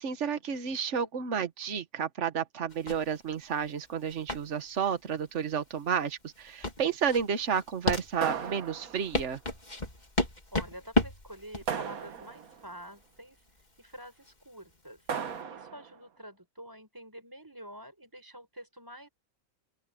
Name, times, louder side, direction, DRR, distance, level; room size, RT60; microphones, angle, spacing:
voice 1, 0.0-9.4, right 7 dB, 55° right, 1.6 m, -31 dB
sound 1, 2.7-15.4, left 1 dB, 30° left, 2.9 m, -34 dB
sound 2, 8.2-9.3 11.7-12.6 15.1-16.0, right 7 dB, 80° right, 1.7 m, -36 dB
voice 2, 10.5-15.1 15.5-19.1, right 1 dB, 15° right, 5.3 m, -48 dB
open air
omnidirectional pair, 1.5 m